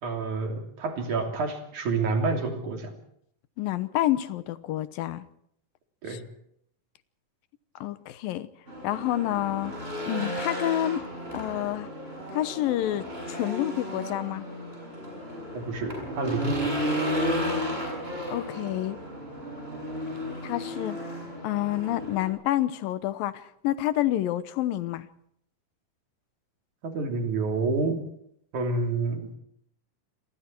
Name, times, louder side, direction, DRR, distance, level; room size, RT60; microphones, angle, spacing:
voice 1, 0.0-2.9 6.0-6.3 15.5-16.7 26.8-28.0 28.5-29.3, right 3 dB, 60° right, 4 dB, 4.4 m, -28 dB
voice 2, 3.6-5.2 6.1-6.2 7.8-8.5 8.8-9.7 10.1-11.1 11.3-11.9 12.3-14.5 18.3-19.0 20.4-21.0 21.4-25.1, left 13 dB, 90° left, 14 dB, 2.8 m, -28 dB
Race car auto racing / Engine, 8.7-22.3, equal, 15° right, 8.2 m, -33 dB
28.0 x 22.5 x 4.6 m, 0.70 s
omnidirectional pair, 3.9 m